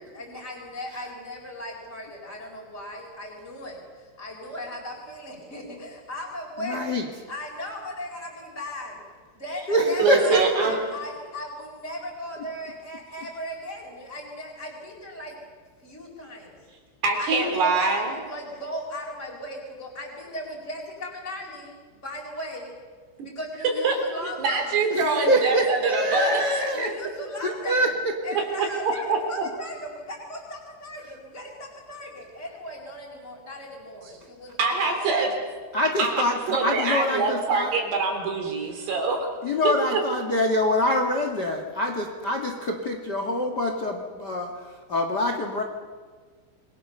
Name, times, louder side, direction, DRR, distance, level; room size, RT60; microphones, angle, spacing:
voice 1, 0.0-6.8 7.1-9.0 9.3-15.4 15.8-16.6 17.2-21.7 22.0-22.7 23.2-24.8 26.1-27.8 28.2-35.4, left 1 dB, 15° left, -4 dB, 4.7 m, -37 dB
voice 2, 6.6-7.1 9.7-10.7 17.3-17.6 24.9-26.9 27.4-28.1 35.7-37.7 39.4-45.6, left 1 dB, 70° left, 4 dB, 1.0 m, -25 dB
voice 3, 10.0-10.8 17.0-18.1 23.8-26.4 28.4-29.5 34.6-35.3 36.0-36.2 36.5-39.3 39.6-40.0, right 4 dB, 60° right, 4 dB, 5.3 m, -24 dB
28.0 x 23.0 x 6.9 m, 1.5 s
omnidirectional pair, 5.6 m